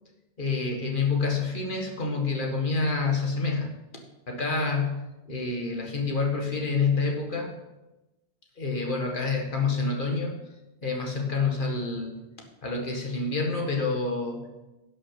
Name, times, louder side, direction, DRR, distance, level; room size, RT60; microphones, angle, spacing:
voice 1, 0.4-3.7 4.3-5.0 5.3-7.5 8.6-10.4 10.8-12.3 12.6-14.4, left 4 dB, 50° left, 1 dB, 1.9 m, -27 dB
11.0 x 6.3 x 5.8 m, 1.0 s
omnidirectional pair, 1.1 m